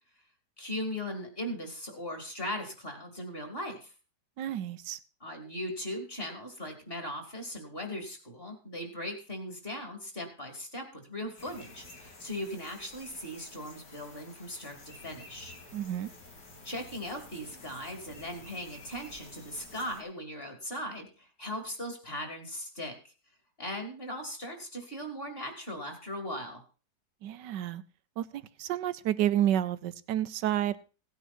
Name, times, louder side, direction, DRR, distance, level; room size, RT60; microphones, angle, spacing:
voice 1, 0.6-3.9 5.2-15.5 16.6-23.0 23.6-26.6, equal, 30° left, 4 dB, 3.1 m, -39 dB
voice 2, 4.4-5.0 15.7-16.1 27.2-27.8 28.2-30.8, right 11 dB, 75° right, 15 dB, 1.4 m, -30 dB
sound 1, 11.4-20.0, left 2 dB, 75° left, 3.0 m, -51 dB
17.0 x 9.2 x 4.3 m, 0.34 s
omnidirectional pair, 1.9 m